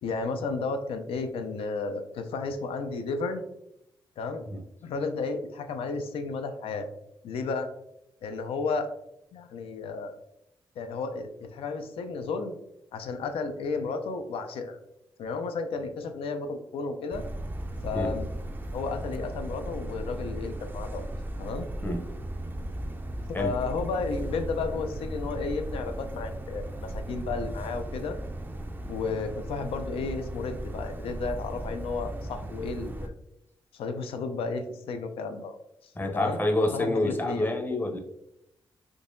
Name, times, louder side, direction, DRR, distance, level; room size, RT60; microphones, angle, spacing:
voice 1, 0.0-3.4 4.2-4.4 4.8-6.9 7.2-7.7 8.2-8.9 9.3-10.2 10.8-12.6 12.9-14.8 15.2-17.2 17.8-18.3 18.7-21.0 21.4-21.7 23.3-28.2 28.9-33.1 33.7-35.6 35.8-37.5, left 4 dB, 85° left, 7 dB, 0.4 m, -33 dB
sound 1, 17.1-33.1, right 1 dB, 20° right, 0.4 m, -36 dB
voice 2, 36.0-38.0, left 1 dB, 20° left, 3 dB, 0.6 m, -27 dB
3.7 x 2.8 x 2.5 m, 0.83 s
cardioid pair, 80°, 9 cm